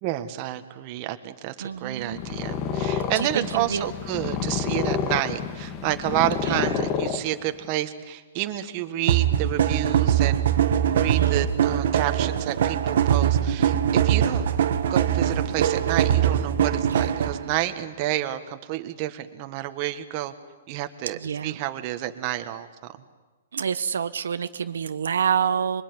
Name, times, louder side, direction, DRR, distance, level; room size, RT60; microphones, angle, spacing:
voice 1, 0.0-10.5 11.0-14.5 14.9-20.3 20.7-22.7, right 14 dB, 30° right, 8 dB, 1.6 m, -29 dB
voice 2, 1.6-2.2 3.2-3.9 6.5-6.9 11.1-11.7 16.9-17.1 21.1-21.6 23.5-25.8, right 7 dB, 85° right, 11 dB, 1.1 m, -28 dB
Purr, 2.0-7.7, left 7 dB, 25° left, 1.6 m, -29 dB
sound 1, 9.1-17.5, right 9 dB, 60° right, 1.7 m, -22 dB
26.0 x 23.5 x 9.7 m, 1.3 s
hypercardioid pair, 160°, 0 cm